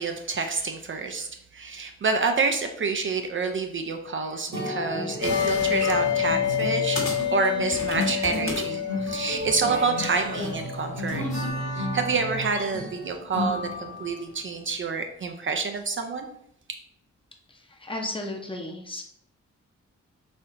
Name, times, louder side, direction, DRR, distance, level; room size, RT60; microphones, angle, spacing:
voice 1, 0.0-11.2 11.7-16.3, right 4 dB, 45° right, 5 dB, 0.4 m, -28 dB
sound 1, 4.5-14.2, equal, 75° right, 1.4 m, -33 dB
sound 2, 5.2-12.3, left 10 dB, 90° left, 0.7 m, -29 dB
sound 3, 6.5-6.7 7.0-8.7 9.0-11.5, left 2 dB, 45° left, 1.3 m, -35 dB
voice 2, 17.5-19.0, left 1 dB, 20° left, 1 dB, 0.7 m, -34 dB
4.1 x 2.8 x 2.6 m, 0.74 s
cardioid pair, 60°, 29 cm